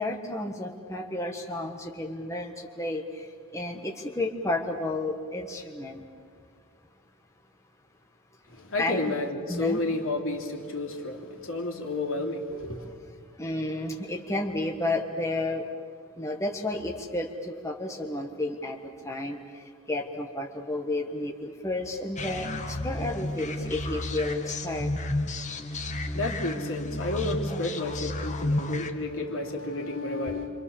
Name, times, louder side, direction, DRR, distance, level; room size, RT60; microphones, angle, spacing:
voice 1, 0.0-3.3 3.5-6.0 8.8-9.0 9.5-9.8 13.4-15.6 16.2-18.8 19.0-19.4 19.9-24.9, left 2 dB, 15° left, 1 dB, 1.5 m, -31 dB
voice 2, 8.5-12.8 26.0-30.5, left 2 dB, 65° left, 2 dB, 3.3 m, -31 dB
sound 1, 22.2-28.9, left 1 dB, 35° left, 1.5 m, -32 dB
28.0 x 26.0 x 7.2 m, 2.1 s
head